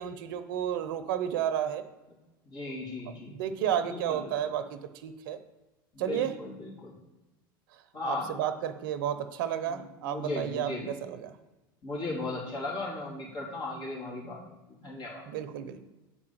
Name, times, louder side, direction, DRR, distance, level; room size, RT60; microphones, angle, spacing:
voice 1, 0.0-1.8 2.7-2.8 3.1-5.4 6.0-6.3 8.0-11.4 15.3-15.8, right 10 dB, 70° right, 10 dB, 0.7 m, -32 dB
voice 2, 2.4-4.5 5.9-7.0 7.9-8.3 9.7-11.0 11.8-15.3, left 2 dB, 40° left, -4 dB, 3.2 m, -37 dB
8.5 x 4.8 x 7.3 m, 1.1 s
hypercardioid pair, 95°, 12 cm